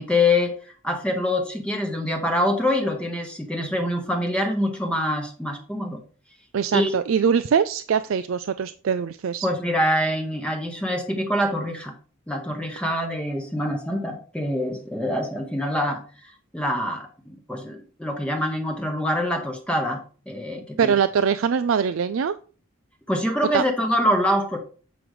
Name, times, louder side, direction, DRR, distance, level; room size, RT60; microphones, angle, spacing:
voice 1, 0.0-6.0 6.7-6.9 9.4-11.9 12.3-20.9 23.1-24.6, left 1 dB, 5° left, 3 dB, 0.9 m, -25 dB
voice 2, 6.5-9.5 20.8-22.4 23.5-23.6, right 7 dB, 80° right, 12 dB, 0.4 m, -22 dB
7.8 x 5.1 x 4.8 m, 0.39 s
head